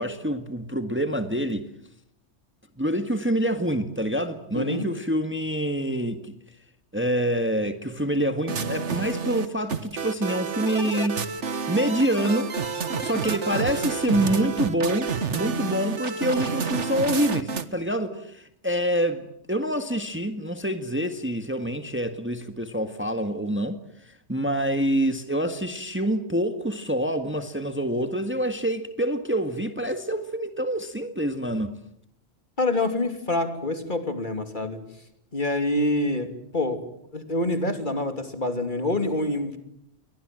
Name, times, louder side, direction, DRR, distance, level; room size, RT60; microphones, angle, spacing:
voice 1, 0.0-1.6 2.8-6.3 6.9-11.3 11.7-12.5 13.0-19.2 19.5-23.8 24.0-31.7, equal, 10° right, 1.7 m, -26 dB
voice 2, 4.5-4.9 32.6-34.8 35.3-36.8 37.1-39.6, left 2 dB, 40° left, 3.1 m, -26 dB
sound 1, 8.5-17.7, right 5 dB, 75° right, 1.8 m, -29 dB
29.0 x 24.0 x 7.7 m
omnidirectional pair, 1.2 m